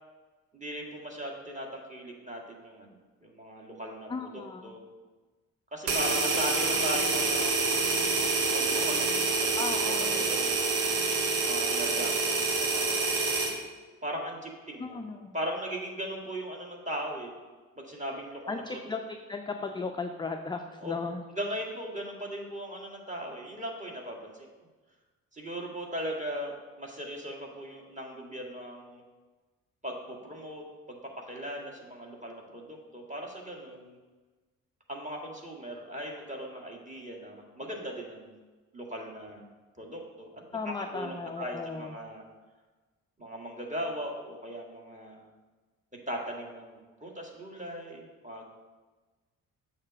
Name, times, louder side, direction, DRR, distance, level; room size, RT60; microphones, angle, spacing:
voice 1, 0.5-4.8 5.7-7.6 8.5-11.1 11.4-13.3 14.0-17.3 17.8-18.9 19.6-19.9 20.8-20.9 21.3-24.5 25.3-29.0 29.8-34.0 34.9-38.4 38.7-39.5 39.8-42.2 43.2-45.2 46.1-48.4, equal, 15° right, -1 dB, 1.7 m, -39 dB
voice 2, 4.1-4.8 9.6-10.3 14.8-15.3 18.5-21.2 40.5-42.0, left 4 dB, 10° left, 5 dB, 0.4 m, -36 dB
sound 1, 5.9-13.6, right 3 dB, 85° right, 0.8 m, -27 dB
6.5 x 3.0 x 5.8 m, 1.3 s
hypercardioid pair, 40°, 42 cm